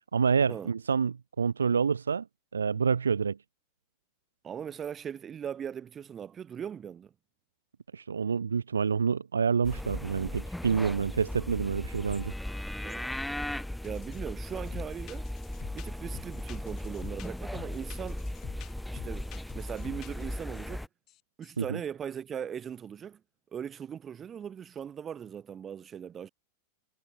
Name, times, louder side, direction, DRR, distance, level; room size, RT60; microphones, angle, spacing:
voice 1, 0.1-2.2 2.5-3.4 7.9-12.3 21.6-21.8, right 6 dB, 70° right, 1.0 m, -27 dB
voice 2, 4.4-7.1 12.8-13.1 13.8-15.3 15.7-18.3 18.9-20.9 21.4-23.2 23.5-26.3, right 8 dB, 25° right, 2.4 m, -39 dB
sound 1, 9.6-20.9, left 1 dB, 5° left, 0.7 m, -37 dB
sound 2, 13.8-14.2 14.5-20.7 21.1-21.6, left 15 dB, 35° left, 1.5 m, -49 dB
figure-of-eight pair, 90°, 0 cm